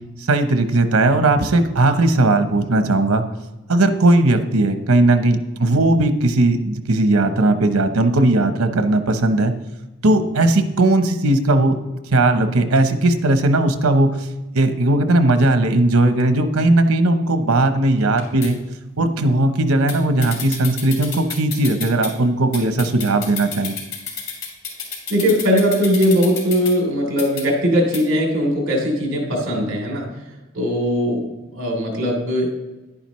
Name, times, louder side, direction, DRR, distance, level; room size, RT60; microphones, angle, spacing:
voice 1, 0.2-3.2 3.7-9.5 10.0-11.8 12.1-14.3 14.5-18.6 19.0-23.7, right 2 dB, 90° right, 9 dB, 0.9 m, -17 dB
sound 1, 18.0-18.5 19.9-20.0 20.2-22.1 22.5-26.7 27.2-27.4 27.9-28.0, left 5 dB, 90° left, 2.9 m, -31 dB
voice 2, 25.1-30.1 30.5-31.2 31.5-32.5, equal, 60° right, 0 dB, 3.1 m, -19 dB
11.0 x 9.8 x 3.1 m, 1.1 s
head